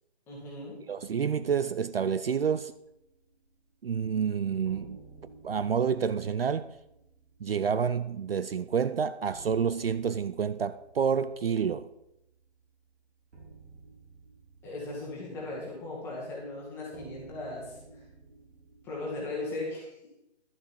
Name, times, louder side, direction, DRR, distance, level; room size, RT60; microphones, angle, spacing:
voice 1, 0.3-0.8 14.6-18.0 18.8-19.9, left 2 dB, 5° left, 1.9 m, -38 dB
voice 2, 0.9-2.7 3.8-5.0 5.4-6.7 7.4-11.9, right 7 dB, 60° right, 0.5 m, -28 dB
sound 1, 2.9-4.1 4.6-19.4, right 3 dB, 80° right, 3.6 m, -54 dB
12.0 x 7.2 x 4.5 m
hypercardioid pair, 165°, 34 cm